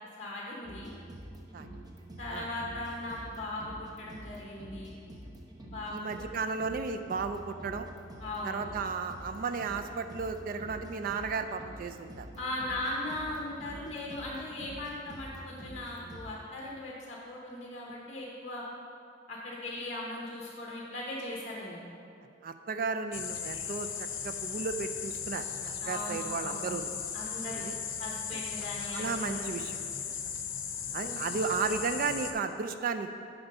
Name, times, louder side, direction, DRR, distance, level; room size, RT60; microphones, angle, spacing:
voice 1, 0.2-0.9 2.2-4.9 5.7-6.3 8.2-8.6 12.4-18.6 19.3-21.8 25.8-26.8 27.1-27.6 28.0-29.5 31.0-31.1, left 1 dB, 35° left, -3 dB, 0.9 m, -38 dB
sound 1, 0.6-16.3, right 1 dB, 20° right, 0.7 m, -47 dB
voice 2, 5.9-7.9 8.4-12.3 22.4-26.9 27.6-27.7 28.3-28.4 28.8-29.8 30.1-30.2 30.9-33.1, right 5 dB, 45° right, 8 dB, 0.3 m, -34 dB
sound 2, 23.1-32.3, left 7 dB, 80° left, 0.6 m, -37 dB
7.9 x 4.5 x 5.3 m, 2.4 s
head